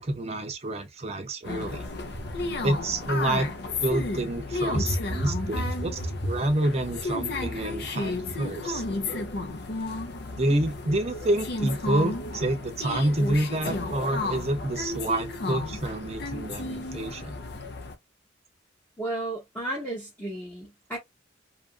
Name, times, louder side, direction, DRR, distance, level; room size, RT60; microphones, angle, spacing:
voice 1, 0.0-1.9 2.6-3.5 3.8-6.0 6.3-8.8 10.4-17.3, right 1 dB, 30° right, 0.5 m, -28 dB
sound 1, 1.4-17.9, left 2 dB, 55° left, 0.6 m, -33 dB
voice 2, 19.0-21.0, right 1 dB, 10° left, 0.8 m, -32 dB
2.8 x 2.5 x 2.4 m
head